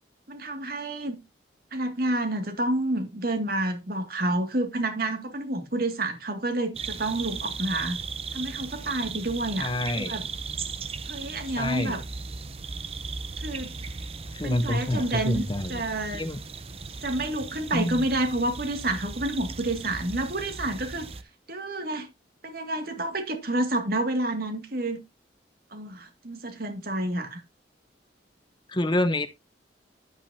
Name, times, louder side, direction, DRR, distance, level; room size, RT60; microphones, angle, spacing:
voice 1, 0.3-1.2 1.7-8.0 8.3-10.3 11.1-12.0 13.4-13.7 14.4-16.3 17.0-21.1 21.5-22.1 22.4-25.0 25.7-27.4, right 1 dB, 55° right, 2.2 m, -29 dB
sound 1, 6.7-21.2, right 4 dB, 35° right, 0.8 m, -37 dB
voice 2, 9.6-10.1 11.6-12.0 14.3-15.8 16.1-16.4 17.7-18.0 28.7-29.3, left 1 dB, 25° left, 0.8 m, -27 dB
10.5 x 8.7 x 2.8 m
head